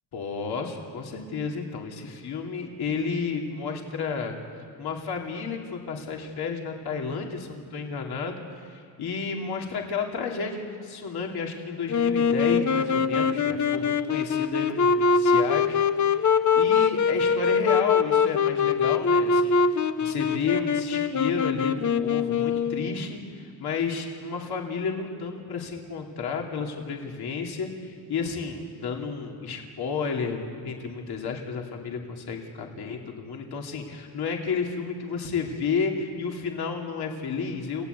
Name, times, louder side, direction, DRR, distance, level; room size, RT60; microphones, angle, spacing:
voice 1, 0.1-4.4 4.8-37.9, left 5 dB, 65° left, 1 dB, 2.9 m, -32 dB
Wind instrument woodwind instrument, 11.9-23.0, left 5 dB, 45° left, 0.9 m, -23 dB
28.5 x 17.0 x 8.2 m, 2.3 s
cardioid pair, 110°, 40 cm